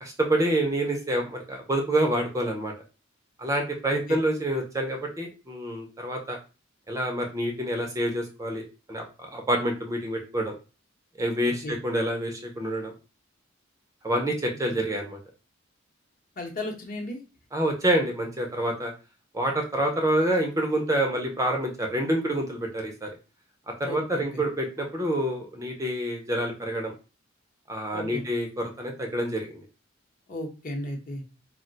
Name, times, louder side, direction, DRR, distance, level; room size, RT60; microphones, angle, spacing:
voice 1, 0.0-2.7 3.4-6.4 6.9-10.5 11.2-12.9 14.0-15.2 17.5-18.9 19.3-23.1 23.8-26.9 27.7-29.6, right 1 dB, 15° right, 2 dB, 0.4 m, -27 dB
voice 2, 16.4-17.2 23.8-24.4 27.9-28.2 30.3-31.2, left 1 dB, 45° left, 1 dB, 0.8 m, -35 dB
2.3 x 2.1 x 3.9 m, 0.32 s
head